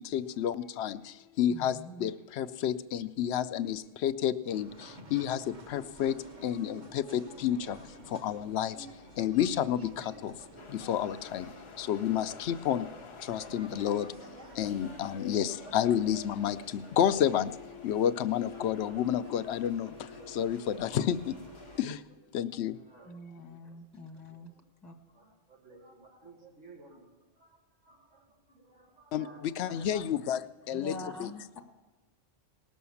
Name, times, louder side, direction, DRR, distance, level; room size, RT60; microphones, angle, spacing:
voice 1, 0.0-8.9 9.2-10.4 10.7-11.5 11.8-12.9 13.2-14.3 14.5-17.5 17.8-21.4 21.8-22.0 22.3-22.8 29.1-30.4 30.7-31.3, left 10 dB, 65° left, 12 dB, 0.8 m, -30 dB
voice 2, 1.5-2.1 23.0-24.5 24.8-24.9 30.7-31.6, left 1 dB, ahead, 3 dB, 0.9 m, -44 dB
sound 1, 4.5-21.8, right 1 dB, 40° right, 1.4 m, -51 dB
sound 2, 10.6-21.8, left 6 dB, 35° left, 0.5 m, -50 dB
voice 3, 22.7-23.8 24.1-24.6 25.1-30.0, right 2 dB, 80° right, 0 dB, 2.6 m, -56 dB
18.5 x 6.3 x 7.0 m, 1.2 s
omnidirectional pair, 1.3 m